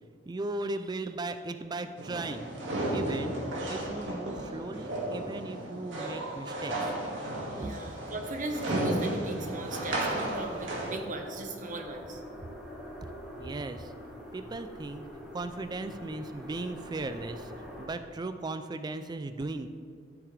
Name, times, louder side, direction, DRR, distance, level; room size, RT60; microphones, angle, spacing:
voice 1, 0.3-2.6 2.9-3.4 3.7-7.0 7.6-7.7 13.4-13.9 14.3-15.1 15.3-19.7, right 2 dB, 20° right, 9 dB, 0.4 m, -37 dB
sound 1, 2.0-10.9, right 1 dB, 80° right, 2.1 m, -34 dB
voice 2, 7.6-12.2, right 2 dB, 45° right, 4 dB, 1.1 m, -38 dB
sound 2, 9.4-17.9, equal, 5° right, 2.5 m, -45 dB
12.0 x 8.5 x 3.3 m, 2.3 s
head